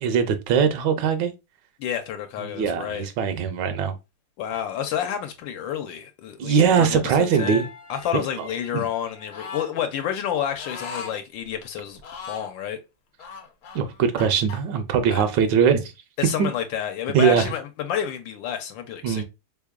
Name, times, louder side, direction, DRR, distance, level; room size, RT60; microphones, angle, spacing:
voice 1, 0.0-1.3 2.4-4.0 6.4-7.7 8.1-8.2 8.7-8.9 13.7-15.9 16.4-16.5 17.1-17.5 19.0-19.2, right 7 dB, 75° right, 1.2 m, -21 dB
voice 2, 1.8-3.1 4.4-12.0 12.3-12.8 15.1-15.2 16.2-19.2, left 9 dB, 80° left, 1.3 m, -29 dB
sound 1, 6.5-10.8, left 4 dB, 5° right, 0.5 m, -42 dB
sound 2, 9.3-9.7 10.6-11.2 12.0-12.5 13.2-14.6, left 5 dB, 60° left, 0.9 m, -38 dB
3.7 x 3.4 x 2.3 m
omnidirectional pair, 2.0 m